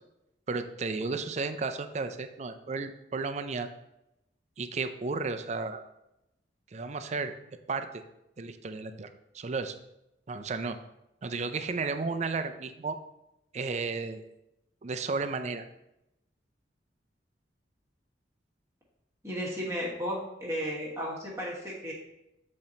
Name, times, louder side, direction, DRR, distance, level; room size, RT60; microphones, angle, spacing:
voice 1, 0.5-3.7 4.6-5.8 6.7-7.3 7.7-7.9 8.4-9.7 10.3-10.8 11.2-13.0 13.5-14.2 14.8-15.6, right 4 dB, 40° right, 8 dB, 0.5 m, -33 dB
voice 2, 19.2-21.9, equal, 15° right, -5 dB, 1.3 m, -34 dB
7.5 x 4.3 x 3.9 m, 0.87 s
head